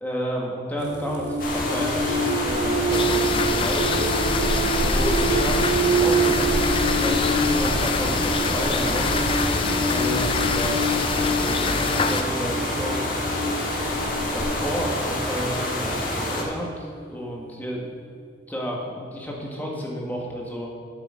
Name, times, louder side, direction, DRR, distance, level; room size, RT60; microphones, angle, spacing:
voice 1, 0.0-4.2 4.8-9.1 9.8-10.9 11.2-13.1 14.3-17.9 18.5-20.7, equal, 10° left, -2 dB, 1.5 m, -31 dB
sound 1, 0.8-17.2, right 2 dB, 70° right, 1.2 m, -27 dB
Little dam, 1.4-16.4, left 1 dB, 50° left, 1.7 m, -27 dB
sound 2, 2.9-12.2, left 5 dB, 30° left, 0.4 m, -26 dB
8.7 x 6.8 x 6.2 m, 2.2 s
head